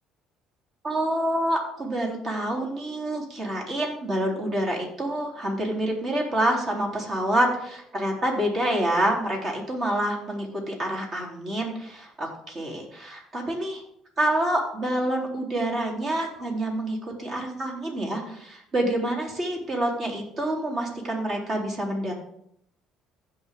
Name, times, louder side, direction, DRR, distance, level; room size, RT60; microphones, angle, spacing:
voice 1, 0.8-13.8 14.2-22.1, right 1 dB, 45° right, -1 dB, 3.7 m, -27 dB
16.0 x 5.7 x 3.8 m, 0.71 s
supercardioid pair, 75°, 0 cm